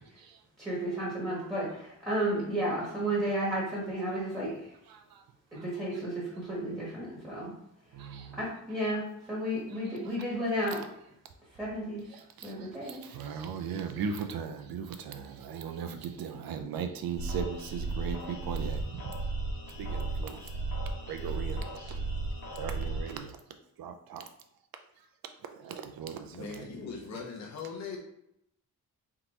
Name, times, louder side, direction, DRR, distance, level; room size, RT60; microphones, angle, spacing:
voice 1, 0.0-0.4 1.3-1.5 4.9-5.2 5.5-5.6 7.9-8.4 9.7-10.1 12.1-19.0 19.8-20.7 21.0-22.0 22.5-23.4 23.8-24.3 25.5-26.7, right 6 dB, 90° right, 6 dB, 0.5 m, -38 dB
voice 2, 0.6-4.7 5.5-7.5 8.4-10.8 11.6-12.0 12.4-13.0, right 1 dB, 10° right, -8 dB, 1.5 m, -32 dB
sound 1, 17.2-23.2, right 2 dB, 85° left, 1.4 m, -35 dB
voice 3, 26.3-28.0, left 5 dB, 50° left, -1 dB, 0.7 m, -40 dB
3.7 x 2.9 x 3.9 m, 0.76 s
wide cardioid pair, 165°, 35 cm